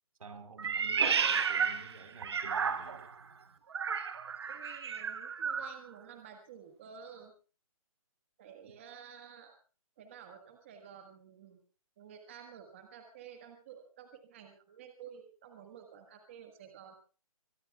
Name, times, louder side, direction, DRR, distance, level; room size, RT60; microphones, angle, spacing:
voice 1, 0.2-3.1, right 4 dB, 75° right, 6 dB, 4.2 m, -50 dB
Meow, 0.6-3.1 3.7-5.8, right 6 dB, 45° right, 1.3 m, -32 dB
voice 2, 0.8-1.3 4.5-7.3 8.4-9.5 10.0-11.6 12.0-16.9, right 8 dB, 20° right, 4 dB, 1.6 m, -52 dB
23.0 x 20.5 x 2.4 m, 0.36 s
hypercardioid pair, 175°, 18 cm